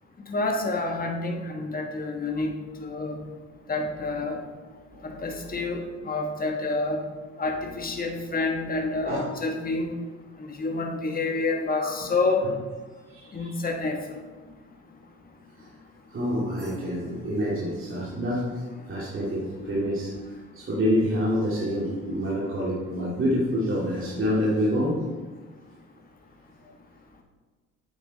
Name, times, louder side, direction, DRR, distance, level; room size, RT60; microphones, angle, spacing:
voice 1, 0.3-2.5 2.8-3.2 3.7-4.4 5.0-7.0 7.4-9.9 10.4-12.4 13.3-14.2, left 3 dB, 30° left, 2 dB, 1.4 m, -28 dB
voice 2, 13.1-13.5 15.6-15.7 16.1-25.0, equal, 45° right, -6 dB, 2.2 m, -27 dB
8.4 x 8.1 x 4.0 m, 1.3 s
cardioid pair, 90°, 30 cm